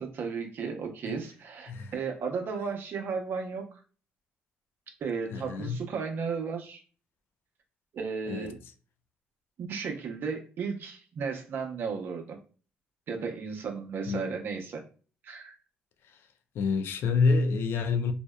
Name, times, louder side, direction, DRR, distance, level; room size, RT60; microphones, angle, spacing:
voice 1, 0.0-3.8 5.0-6.8 7.9-8.6 9.6-12.4 13.1-14.8 15.2-15.6, right 5 dB, 60° right, 0.6 m, -34 dB
voice 2, 5.3-5.8 8.3-8.5 14.1-14.3 16.5-18.1, left 4 dB, 70° left, 0.3 m, -27 dB
2.7 x 2.1 x 2.2 m
supercardioid pair, 70°, 4 cm